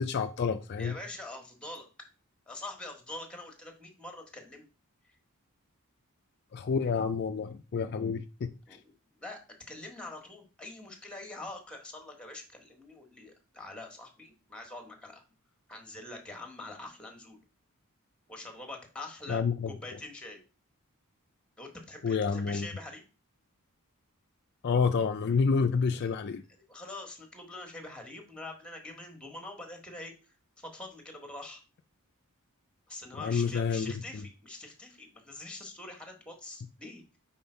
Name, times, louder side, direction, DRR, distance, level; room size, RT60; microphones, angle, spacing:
voice 1, 0.0-1.0 6.5-8.5 19.3-19.7 22.0-22.7 24.6-26.4 33.2-34.2, left 5 dB, 50° left, 0.4 m, -29 dB
voice 2, 0.8-1.9 2.5-4.7 5.1-5.2 8.7-9.4 9.7-15.2 15.7-17.4 18.3-20.4 21.6-23.0 25.9-26.1 26.6-30.1 30.6-31.6 32.9-37.2, left 2 dB, 5° left, 1.2 m, -44 dB
5.4 x 4.3 x 4.4 m
head